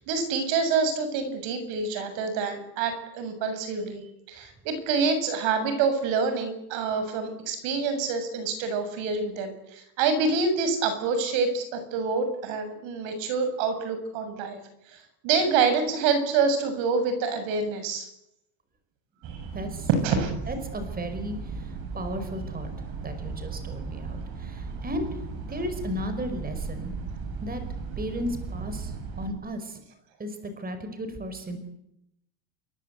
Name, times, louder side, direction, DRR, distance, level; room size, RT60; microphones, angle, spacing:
voice 1, 0.0-4.0 4.3-14.6 14.9-15.0 15.2-18.1 20.0-20.3, right 4 dB, 65° right, 9 dB, 7.3 m, -27 dB
sound 1, 19.2-29.3, right 4 dB, 45° right, 6.5 m, -36 dB
voice 2, 19.5-19.9 20.5-22.7 23.0-25.2 25.5-26.9 27.4-27.6 28.0-29.8 30.2-31.6, equal, 15° right, 8 dB, 5.3 m, -35 dB
29.0 x 22.5 x 8.4 m, 0.81 s
supercardioid pair, 135°, 50 cm